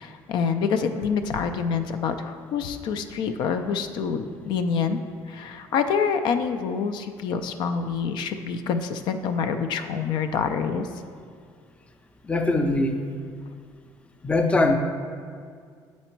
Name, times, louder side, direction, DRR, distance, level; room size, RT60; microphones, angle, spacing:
voice 1, 0.0-5.0 5.3-10.9, left 6 dB, 70° left, 8 dB, 0.4 m, -26 dB
voice 2, 12.3-13.0 14.2-14.7, left 2 dB, 15° left, 5 dB, 0.5 m, -21 dB
7.9 x 4.2 x 4.5 m, 2.1 s
cardioid pair, 130°, 8 cm